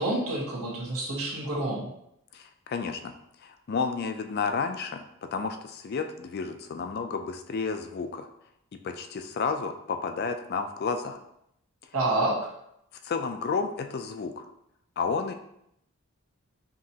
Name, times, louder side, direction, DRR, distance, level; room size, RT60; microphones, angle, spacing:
voice 1, 0.0-1.9 11.9-12.4, right 2 dB, 85° right, -5 dB, 1.4 m, -28 dB
voice 2, 2.3-3.1 3.4-5.0 5.3-8.3 8.7-11.2 13.0-14.4 15.0-15.3, left 5 dB, 45° left, 7 dB, 0.3 m, -31 dB
5.1 x 2.9 x 2.8 m, 0.76 s
head